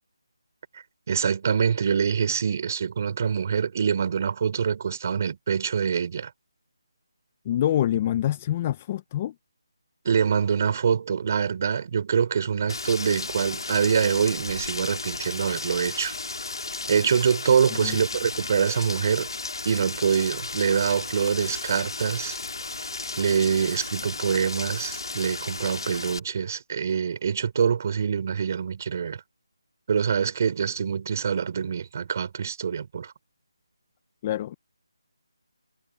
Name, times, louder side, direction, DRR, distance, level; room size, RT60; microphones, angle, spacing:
voice 1, 1.1-6.3 10.0-16.1 16.9-19.3 19.6-22.4 23.2-29.2 29.9-33.1, right 7 dB, 35° right, 4.1 m, -25 dB
voice 2, 7.4-9.3 17.8-18.0 34.2-34.6, left 12 dB, 20° left, 0.6 m, -26 dB
Rain, 12.7-26.2, left 3 dB, 70° left, 2.5 m, -34 dB
figure-of-eight pair, 170°, 3 cm